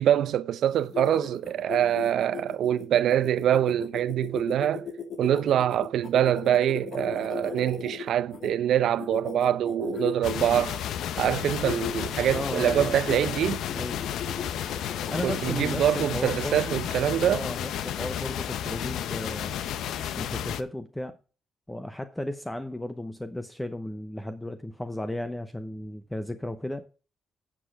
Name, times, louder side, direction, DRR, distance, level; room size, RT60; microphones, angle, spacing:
voice 1, 0.0-4.9 5.2-10.8 11.2-13.6 15.2-17.5, right 10 dB, 75° right, 0.6 m, -25 dB
sound 1, 0.7-8.5 9.0-10.6 11.1-11.4 11.6-11.9 12.2-13.2 13.7-15.4, left 6 dB, 60° left, 2.2 m, -37 dB
sound 2, 10.2-20.6, left 10 dB, 80° left, 0.7 m, -32 dB
voice 2, 12.3-13.0 13.7-14.1 15.1-16.8 17.3-19.5 20.2-21.2 21.7-26.9, left 1 dB, 10° left, 0.8 m, -35 dB
8.6 x 8.0 x 4.6 m
cardioid pair, 90°, 0 cm